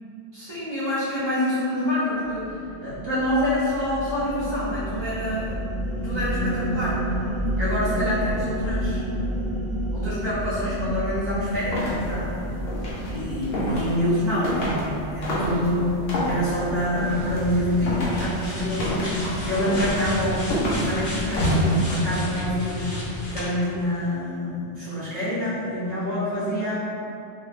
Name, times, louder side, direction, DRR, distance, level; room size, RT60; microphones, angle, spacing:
voice 1, 0.3-2.5 2.8-5.6 6.0-7.0 7.4-9.0 9.9-12.5 13.1-20.4 20.7-23.0 23.3-26.9, left 1 dB, 40° right, -14 dB, 1.4 m, -27 dB
sound 1, 2.2-15.8, equal, 45° left, 0.4 m, -30 dB
sound 2, 11.5-22.0, equal, 65° left, 0.9 m, -30 dB
sound 3, 17.0-23.5, equal, 85° left, 1.2 m, -29 dB
3.0 x 2.7 x 2.5 m, 2.7 s
omnidirectional pair, 1.1 m